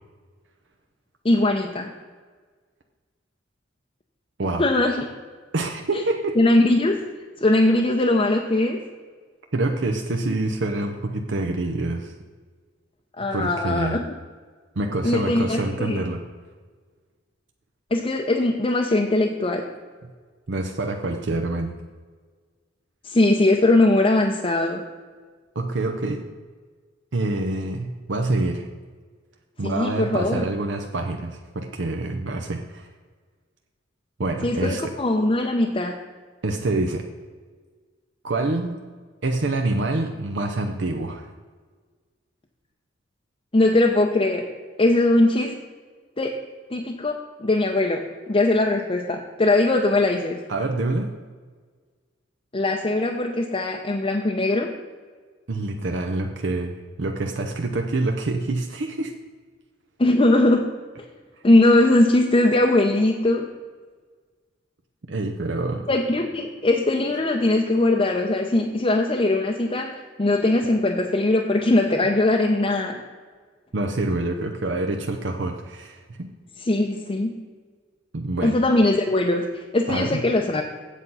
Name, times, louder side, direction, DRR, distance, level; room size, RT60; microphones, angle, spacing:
voice 1, 1.2-1.9 4.6-5.1 6.4-7.0 7.4-8.8 13.2-14.0 15.0-16.0 17.9-19.7 23.0-24.8 29.6-30.4 34.4-35.9 43.5-44.5 44.8-45.6 46.2-46.3 46.7-50.4 52.5-54.7 60.0-60.7 61.4-63.5 65.9-73.0 76.6-77.3 78.4-80.6, left 2 dB, 30° left, 1 dB, 0.6 m, -20 dB
voice 2, 5.5-6.4 9.5-12.1 13.3-14.0 14.8-16.2 20.5-21.7 25.5-26.2 27.1-28.7 29.6-32.9 34.2-34.9 36.4-37.1 38.2-38.8 39.2-41.3 50.5-51.1 55.5-59.1 65.1-65.9 73.7-76.3 78.1-78.6 79.9-80.2, right 2 dB, 65° right, 4 dB, 0.7 m, -26 dB
8.2 x 7.7 x 5.5 m, 1.5 s
head